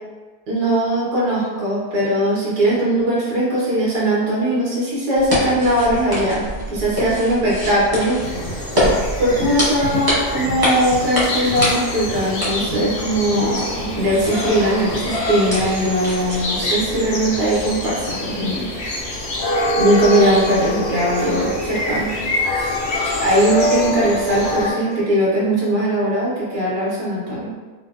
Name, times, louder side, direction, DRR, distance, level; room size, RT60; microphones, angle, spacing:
voice 1, 0.5-8.2 8.5-8.6 9.2-18.7 19.0-19.4 19.8-22.1 22.5-22.8 23.1-27.5, right 1 dB, 75° right, -7 dB, 1.4 m, -20 dB
sound 1, 5.1-16.7, equal, 30° right, 0.4 m, -26 dB
sound 2, 8.2-24.7, left 1 dB, 55° left, 0.8 m, -25 dB
4.1 x 2.0 x 2.3 m, 1.4 s
omnidirectional pair, 1.7 m